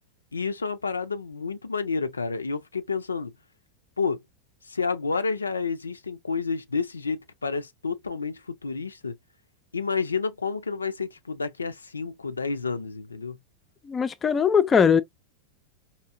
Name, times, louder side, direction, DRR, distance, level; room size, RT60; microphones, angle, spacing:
voice 1, 0.3-3.3 4.0-4.2 4.6-9.2 9.7-13.4, left 4 dB, 75° left, 0.4 m, -30 dB
voice 2, 13.9-15.0, left 6 dB, 20° left, 0.4 m, -20 dB
4.3 x 2.7 x 2.4 m
figure-of-eight pair, 90°, 0 cm